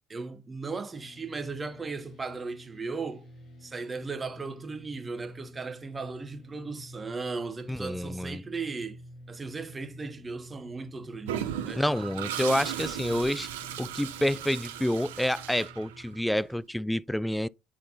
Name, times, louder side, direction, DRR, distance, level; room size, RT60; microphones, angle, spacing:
voice 1, 0.1-3.3 3.6-9.0 9.3-11.8, right 4 dB, 25° right, 1.2 m, -37 dB
sound 1, 0.9-16.2, equal, 50° left, 3.0 m, -50 dB
voice 2, 7.7-8.4 11.7-13.5 13.8-17.5, left 1 dB, 5° left, 0.3 m, -28 dB
Toilet flush, 11.3-16.3, right 11 dB, 80° right, 0.9 m, -36 dB
9.4 x 4.2 x 2.5 m
hypercardioid pair, 65°, 0 cm